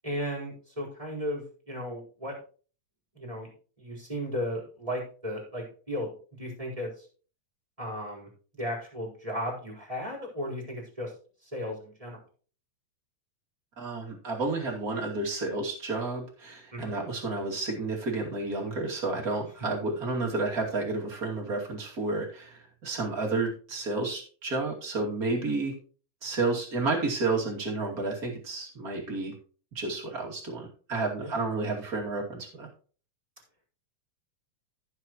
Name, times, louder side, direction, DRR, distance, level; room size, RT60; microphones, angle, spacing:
voice 1, 0.0-2.4 3.1-3.5 3.8-6.1 6.4-7.1 7.8-8.3 8.6-11.1 11.4-12.2 16.7-16.9 31.2-31.4, equal, 10° right, -1 dB, 4.1 m, -35 dB
voice 2, 13.8-25.7 26.2-29.3 29.7-32.7, right 3 dB, 30° right, -2 dB, 2.8 m, -31 dB
14.5 x 7.7 x 3.0 m, 0.39 s
omnidirectional pair, 3.3 m